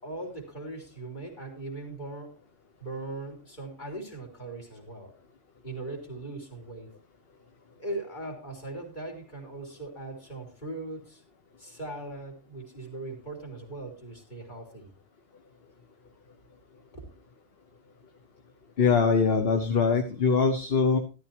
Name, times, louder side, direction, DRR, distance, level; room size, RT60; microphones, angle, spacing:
voice 1, 0.0-2.4 2.8-5.1 5.6-6.9 7.8-11.2 11.6-14.9 16.9-17.0, right 2 dB, 40° left, 1 dB, 3.7 m, -39 dB
voice 2, 18.8-21.0, left 5 dB, 60° left, 5 dB, 1.4 m, -23 dB
13.0 x 13.0 x 3.0 m, 0.32 s
omnidirectional pair, 1.2 m